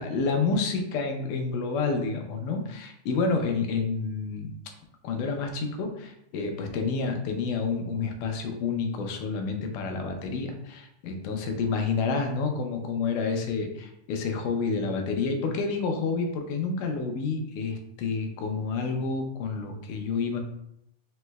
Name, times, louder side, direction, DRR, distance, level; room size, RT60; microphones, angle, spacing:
voice 1, 0.0-4.5 5.0-20.4, left 4 dB, 85° left, 4 dB, 2.1 m, -29 dB
5.3 x 3.0 x 2.2 m, 0.76 s
omnidirectional pair, 3.7 m